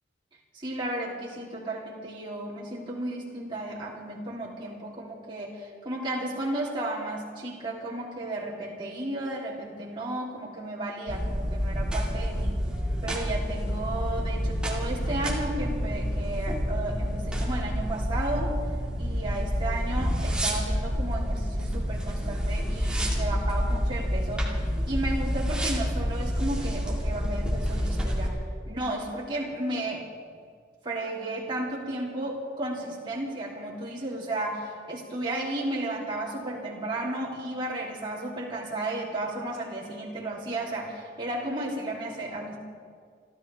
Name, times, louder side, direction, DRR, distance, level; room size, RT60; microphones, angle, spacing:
voice 1, 0.5-12.6 13.0-18.5 19.0-24.5 24.9-28.4 28.7-30.1 30.8-42.6, right 1 dB, 25° right, -6 dB, 3.5 m, -33 dB
sound 1, 11.1-28.3, equal, 5° right, 2.4 m, -28 dB
29.5 x 13.5 x 3.6 m, 2.1 s
head